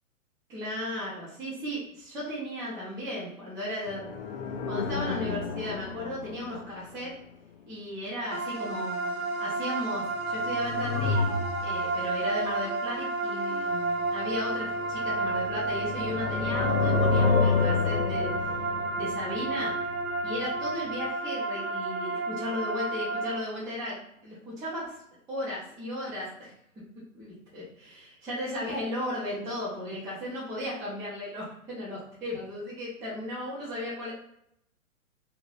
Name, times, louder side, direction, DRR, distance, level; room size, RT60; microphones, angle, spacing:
voice 1, 0.5-4.1 4.7-7.1 7.7-11.3 11.6-18.5 19.0-19.7 20.2-24.0 24.2-25.0 25.3-26.5 27.1-34.1, left 1 dB, 10° right, -7 dB, 0.5 m, -35 dB
sound 1, 3.9-7.0 10.3-12.0 14.4-20.4 20.7-20.8, left 4 dB, 55° left, 0.4 m, -30 dB
sound 2, 8.3-23.4, right 2 dB, 85° right, 0.8 m, -31 dB
2.6 x 2.6 x 3.2 m, 0.74 s
figure-of-eight pair, 120°, 40 cm